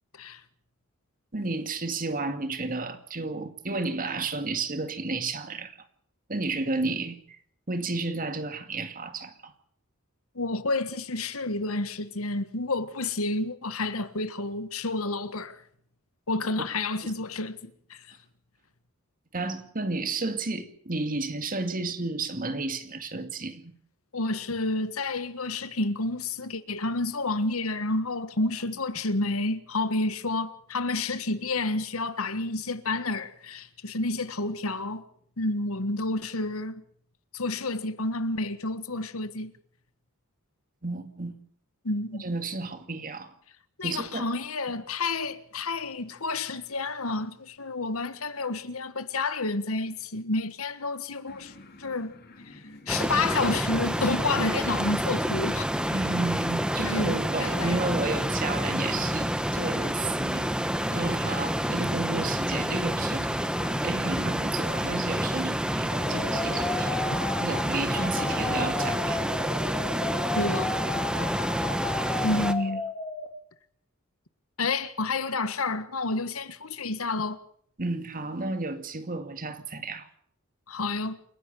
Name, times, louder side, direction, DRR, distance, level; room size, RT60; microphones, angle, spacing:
voice 1, 1.3-5.8 6.3-7.4 7.7-9.5 17.0-17.1 19.3-23.7 40.8-41.4 42.2-43.3 43.8-44.3 55.9-60.5 60.9-67.1 67.4-69.3 71.2-71.4 72.3-72.4 77.8-80.1, right 3 dB, 40° right, 2.2 m, -32 dB
voice 2, 10.3-15.6 16.3-18.0 24.1-35.0 35.4-36.8 37.3-39.5 41.8-42.3 43.8-51.5 51.8-52.1 52.5-55.7 56.8-57.8 70.3-70.8 72.2-72.8 74.6-77.4 80.7-81.2, left 3 dB, 75° left, 1.6 m, -30 dB
sound 1, 51.3-66.6, left 2 dB, 50° left, 3.0 m, -48 dB
sound 2, 52.9-72.5, equal, 5° right, 1.3 m, -28 dB
sound 3, 65.9-73.3, left 3 dB, 20° left, 2.7 m, -33 dB
28.5 x 11.0 x 8.3 m
head